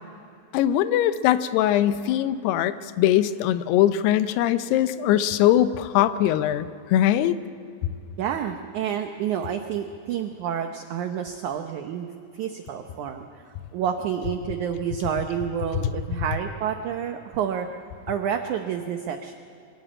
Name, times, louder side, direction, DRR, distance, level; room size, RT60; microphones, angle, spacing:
voice 1, 0.5-7.4, left 12 dB, 85° left, 12 dB, 2.8 m, -21 dB
voice 2, 8.2-12.1 12.3-13.5 13.7-17.7 18.1-19.3, right 8 dB, 85° right, 6 dB, 1.7 m, -29 dB
24.0 x 13.5 x 8.7 m, 2.6 s
omnidirectional pair, 4.6 m